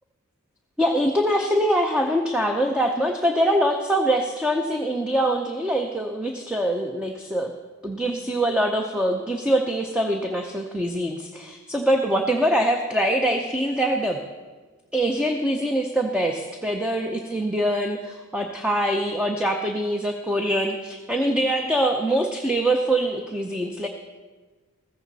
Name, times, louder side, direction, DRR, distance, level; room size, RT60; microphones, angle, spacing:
voice 1, 0.8-7.5 7.8-14.2 14.9-23.9, right 1 dB, 5° right, 3 dB, 0.6 m, -24 dB
15.0 x 14.5 x 4.1 m, 1.4 s
head